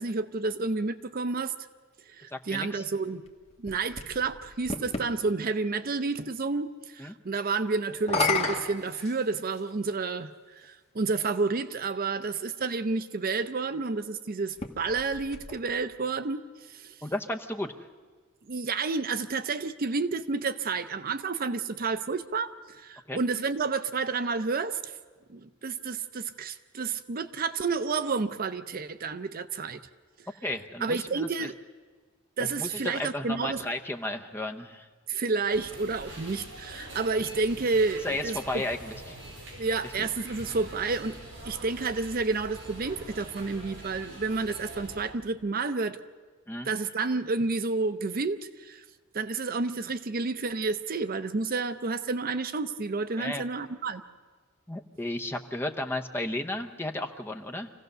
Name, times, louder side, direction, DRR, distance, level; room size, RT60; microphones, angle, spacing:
voice 1, 0.0-1.5 2.1-3.2 3.6-16.9 18.5-24.9 25.3-29.8 30.8-31.5 32.4-33.7 35.1-38.6 39.6-41.2 41.4-46.0 46.6-48.8 49.1-54.0, right 4 dB, 45° right, 12 dB, 0.6 m, -30 dB
voice 2, 2.3-2.9 7.0-7.2 17.0-17.7 23.1-23.2 30.4-31.5 32.4-34.9 38.0-39.2 40.0-40.1 46.5-46.7 53.2-53.4 54.7-57.7, left 1 dB, 10° left, 5 dB, 0.8 m, -34 dB
sound 1, 3.3-5.1 7.9-9.7 10.6-10.7 14.4-16.0, left 3 dB, 30° left, 1.4 m, -32 dB
sound 2, 35.5-45.1, right 1 dB, 60° right, 6.7 m, -44 dB
26.0 x 16.0 x 6.7 m, 1.5 s
head